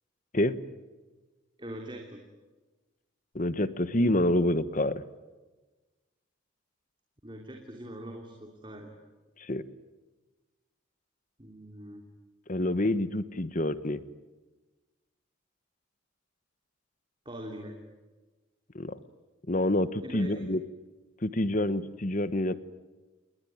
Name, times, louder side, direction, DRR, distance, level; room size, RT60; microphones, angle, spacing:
voice 1, 1.6-2.2 7.2-8.9 11.4-12.0 17.2-17.7 20.0-20.4, right 1 dB, 25° right, 2 dB, 3.1 m, -42 dB
voice 2, 3.3-5.0 9.4-9.6 12.5-14.0 18.7-19.0 19.5-20.6 21.2-22.5, left 1 dB, 40° left, 14 dB, 1.2 m, -27 dB
29.5 x 21.0 x 9.5 m, 1.2 s
head